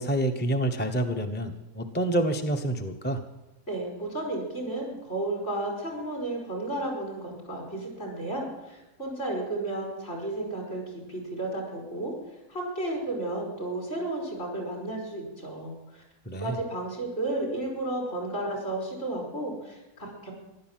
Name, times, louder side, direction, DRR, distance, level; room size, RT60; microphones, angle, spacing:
voice 1, 0.0-3.2 16.3-16.6, right 1 dB, 10° left, 4 dB, 0.9 m, -28 dB
voice 2, 3.7-10.8 11.1-16.0 16.3-20.3, right 2 dB, 55° left, 1 dB, 5.6 m, -33 dB
15.5 x 12.0 x 7.5 m, 1.0 s
omnidirectional pair, 1.5 m